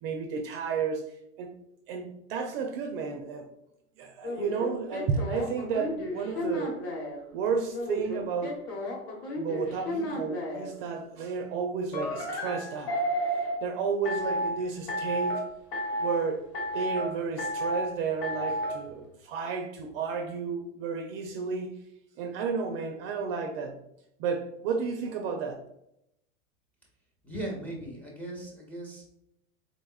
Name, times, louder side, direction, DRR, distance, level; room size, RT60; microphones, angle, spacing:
voice 1, 0.0-1.1 1.4-1.5 1.9-3.5 4.0-6.8 7.3-8.6 9.4-13.0 13.6-15.4 16.0-16.5 16.7-21.8 22.2-23.8 24.2-25.6, right 5 dB, 45° right, 0.5 m, -32 dB
sound 1, 4.2-7.2 7.7-10.7 11.9-13.6 14.1-14.5 14.9-15.4 15.7-16.2 16.5-17.1 17.4-17.9 18.2-18.7, equal, 55° left, 1.2 m, -32 dB
voice 2, 27.2-29.1, right 1 dB, 5° left, 0.9 m, -38 dB
3.8 x 3.4 x 2.3 m
hypercardioid pair, 115°, 40 cm